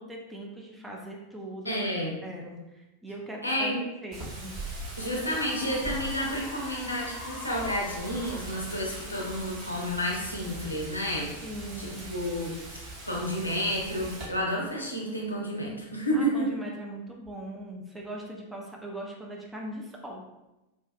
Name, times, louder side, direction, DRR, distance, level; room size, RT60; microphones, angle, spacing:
voice 1, 0.0-1.7 2.2-4.5 11.4-12.2 16.1-20.2, right 1 dB, 10° right, -1 dB, 0.4 m, -40 dB
voice 2, 1.6-2.2 3.4-3.8 5.0-11.3 11.8-12.5 13.1-16.5, equal, 85° left, -2 dB, 0.5 m, -30 dB
Wind, 4.1-14.2, right 2 dB, 40° right, 1.0 m, -41 dB
Cheering / Applause, 4.6-11.1, left 2 dB, 35° left, 0.8 m, -46 dB
2.5 x 2.3 x 2.2 m, 0.99 s
figure-of-eight pair, 90°, 0 cm